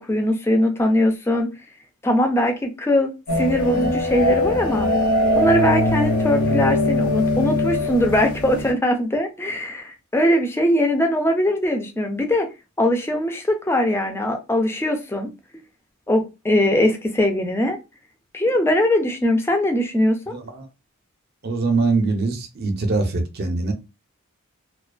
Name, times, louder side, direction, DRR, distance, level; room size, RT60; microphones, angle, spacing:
voice 1, 0.0-1.5 2.0-4.9 5.4-12.5 12.8-15.3 16.1-17.8 18.3-20.2, left 1 dB, 10° left, 0.3 m, -21 dB
sound 1, 3.3-8.7, left 1 dB, 70° left, 0.9 m, -21 dB
voice 2, 20.3-20.7 21.4-23.7, right 3 dB, 45° right, 0.5 m, -23 dB
2.4 x 2.2 x 2.4 m
head